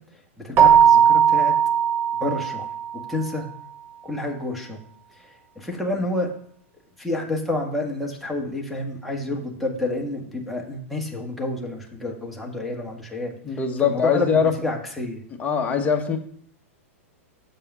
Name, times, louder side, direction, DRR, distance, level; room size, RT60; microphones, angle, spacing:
voice 1, 0.1-1.5 2.2-2.7 3.1-3.5 4.0-4.8 5.1-6.3 7.0-15.2, left 2 dB, ahead, -2 dB, 1.6 m, -29 dB
Keyboard (musical), 0.6-3.0, right 8 dB, 30° right, 1.3 m, -17 dB
voice 2, 13.4-14.5 15.4-16.2, left 6 dB, 20° left, 2 dB, 1.3 m, -22 dB
6.8 x 5.5 x 5.5 m, 0.62 s
hypercardioid pair, 115°, 7 cm